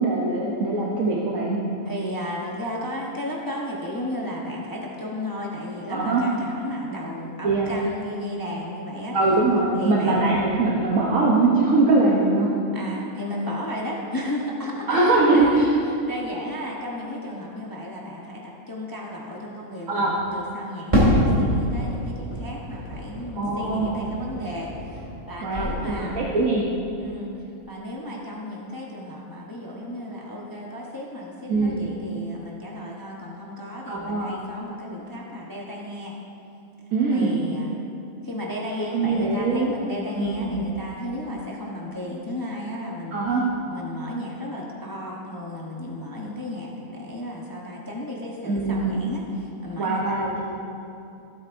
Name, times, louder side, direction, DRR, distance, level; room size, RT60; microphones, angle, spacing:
voice 1, 0.0-1.6 5.9-6.2 7.4-7.7 9.1-12.5 14.9-15.7 19.9-20.2 23.4-24.0 25.4-26.6 31.5-31.8 33.9-34.3 36.9-37.4 38.9-39.7 40.2-40.6 43.1-43.5 48.4-49.0 49.8-50.4, right 3 dB, 70° right, -4 dB, 1.3 m, -22 dB
voice 2, 1.9-9.2 9.7-10.4 12.7-15.7 16.1-26.4 27.0-27.3 27.7-36.1 37.1-37.7 38.2-43.2 43.7-50.0, left 1 dB, 20° left, -3 dB, 0.8 m, -34 dB
Fireworks, 20.9-25.3 25.5-26.3, equal, 20° right, 2.2 m, -25 dB
15.0 x 8.3 x 2.6 m, 2.8 s
omnidirectional pair, 1.5 m